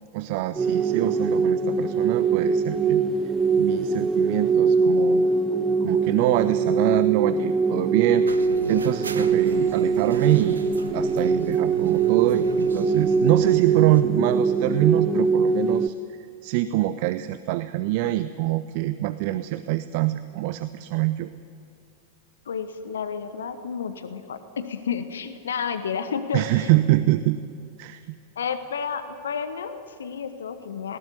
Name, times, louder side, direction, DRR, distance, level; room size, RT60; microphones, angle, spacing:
voice 1, 0.1-3.0 3.6-5.4 5.8-8.2 8.7-10.6 10.9-21.3 26.3-27.4 27.8-28.0, right 16 dB, 50° right, 13 dB, 0.6 m, -25 dB
sound 1, 0.6-15.9, right 5 dB, 15° right, 0.8 m, -22 dB
sound 2, 8.3-14.0, right 5 dB, 75° right, 1.1 m, -39 dB
voice 2, 22.4-26.7 28.3-31.0, left 6 dB, 65° left, 10 dB, 1.2 m, -31 dB
20.0 x 18.5 x 9.4 m, 2.3 s
figure-of-eight pair, 90°, 0 cm